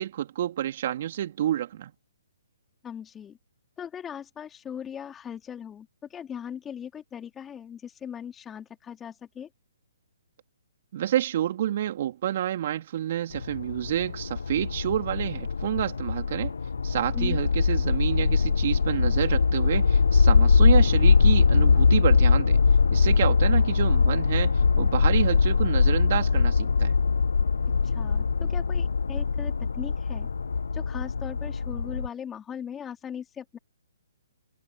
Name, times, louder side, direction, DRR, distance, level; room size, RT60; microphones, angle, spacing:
voice 1, 0.0-1.9 10.9-16.5 16.8-22.6 22.9-26.9, right 11 dB, 50° right, 3.3 m, -28 dB
voice 2, 2.8-3.4 3.8-9.5 17.1-17.4 27.8-30.3 30.7-33.6, left 8 dB, 15° left, 3.9 m, -39 dB
sound 1, 13.3-32.1, left 5 dB, 75° left, 0.6 m, -22 dB
figure-of-eight pair, 130°, 0 cm